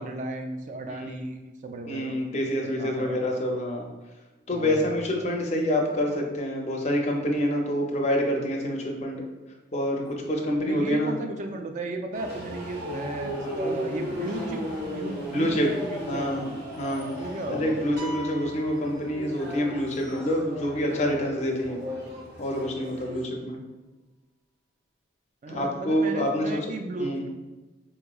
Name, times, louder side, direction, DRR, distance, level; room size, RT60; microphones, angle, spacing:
voice 1, 0.0-1.4 1.6-3.4 4.5-4.9 10.6-14.6 14.9-16.6 17.1-17.8 25.4-27.3, right 2 dB, 40° right, 5 dB, 0.3 m, -35 dB
voice 2, 1.9-3.9 4.5-9.2 9.7-11.2 13.4-13.7 15.3-15.7 16.1-16.5 16.8-17.1 17.5-21.8 22.4-23.6 25.5-26.7 27.0-27.2, equal, 35° left, 0 dB, 0.5 m, -27 dB
sound 1, 12.1-23.2, equal, 55° right, 1.1 m, -36 dB
sound 2, 18.0-19.9, left 1 dB, 70° right, 0.7 m, -42 dB
4.4 x 2.9 x 2.3 m, 1.2 s
head